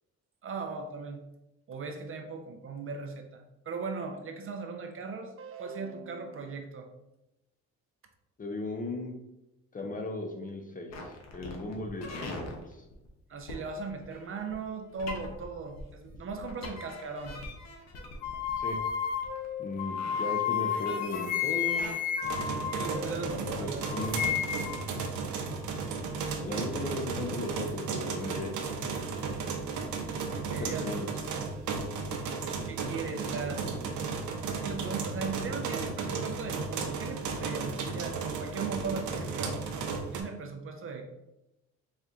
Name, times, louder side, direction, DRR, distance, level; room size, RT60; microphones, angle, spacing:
voice 1, 0.4-1.2 1.7-6.9 13.3-17.4 18.1-18.2 22.7-23.8 30.2-31.0 32.7-33.6 34.5-39.6 40.1-41.1, right 4 dB, 45° right, 5 dB, 0.6 m, -38 dB
voice 2, 8.4-9.2 9.7-12.8 18.6-18.8 19.6-22.0 23.6-24.2 26.4-28.9 30.6-31.1, left 2 dB, 25° left, 3 dB, 0.7 m, -37 dB
sound 1, 10.9-21.9, left 2 dB, 60° left, 0.9 m, -43 dB
sound 2, 18.2-23.5 23.8-24.9, left 9 dB, 80° left, 0.5 m, -32 dB
sound 3, 22.2-40.2, right 4 dB, 75° right, 0.7 m, -34 dB
4.3 x 2.4 x 3.6 m, 0.93 s
cardioid pair, 90°, 30 cm